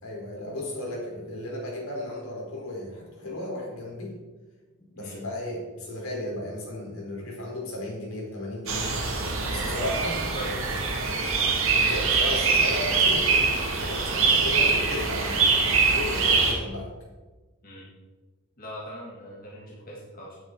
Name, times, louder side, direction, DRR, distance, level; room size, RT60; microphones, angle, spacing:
voice 1, 0.0-4.2 4.9-8.9 9.5-10.2 11.7-13.4 13.8-16.9, left 1 dB, 75° left, -2 dB, 4.4 m, -34 dB
sound 1, 8.7-16.5, right 4 dB, 70° right, 2.1 m, -24 dB
voice 2, 9.5-10.8 17.6-17.9 18.6-20.4, equal, 40° left, -4 dB, 2.0 m, -40 dB
10.5 x 9.5 x 4.7 m, 1.3 s
head